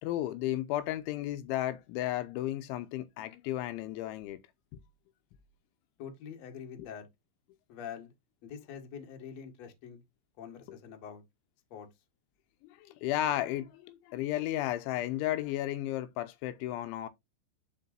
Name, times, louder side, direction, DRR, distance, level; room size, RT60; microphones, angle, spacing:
voice 1, 0.0-4.4 10.7-10.8 12.6-17.1, left 13 dB, 80° left, 3.0 m, -33 dB
voice 2, 6.0-7.1 7.7-8.1 8.4-10.0 10.4-11.2 11.7-11.9, left 7 dB, 60° left, 1.8 m, -45 dB
11.5 x 5.0 x 2.6 m
omnidirectional pair, 5.7 m